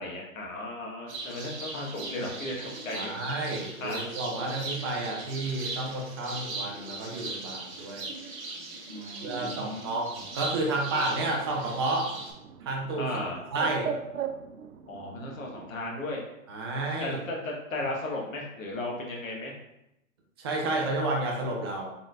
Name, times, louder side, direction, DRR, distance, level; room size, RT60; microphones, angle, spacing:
voice 1, 0.0-3.1 3.8-4.0 8.9-10.0 13.0-13.4 14.9-16.2 17.0-19.5, left 2 dB, 75° left, -1 dB, 1.4 m, -35 dB
sound 1, 1.1-12.3, right 3 dB, 55° right, 1.3 m, -39 dB
voice 2, 2.9-8.1 9.2-12.1 12.6-13.2 13.5-13.9 16.5-17.2 20.4-21.9, right 2 dB, 20° right, -1 dB, 0.4 m, -31 dB
Bird, 10.2-15.7, right 7 dB, 90° right, 0.5 m, -40 dB
4.1 x 3.8 x 2.4 m, 0.85 s
hypercardioid pair, 140°, 41 cm